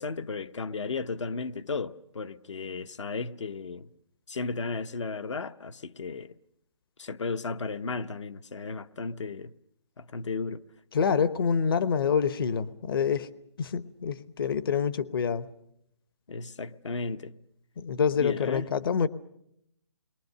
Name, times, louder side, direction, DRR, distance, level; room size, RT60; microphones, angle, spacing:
voice 1, 0.0-3.9 4.3-6.3 7.0-9.5 10.0-10.6 16.3-17.4 18.1-18.7, left 4 dB, 75° left, 0.9 m, -34 dB
voice 2, 10.9-13.3 13.6-15.5 17.8-19.1, left 6 dB, 50° left, 0.9 m, -26 dB
29.0 x 22.5 x 6.6 m
hypercardioid pair, 160°, 15 cm